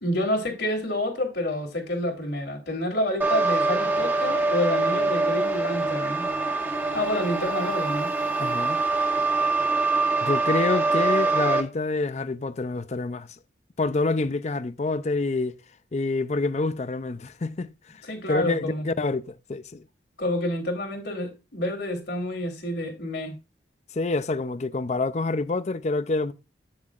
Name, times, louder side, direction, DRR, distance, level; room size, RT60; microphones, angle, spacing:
voice 1, 0.0-6.3 6.9-8.1 18.1-18.8 20.2-23.3, left 1 dB, 70° left, 3.3 m, -28 dB
sound 1, 3.2-11.6, right 3 dB, 10° right, 1.2 m, -24 dB
voice 2, 8.4-8.8 10.2-13.3 13.8-15.6 15.9-17.7 18.3-19.8 23.9-26.3, left 3 dB, 35° left, 0.4 m, -27 dB
9.4 x 7.1 x 2.5 m
head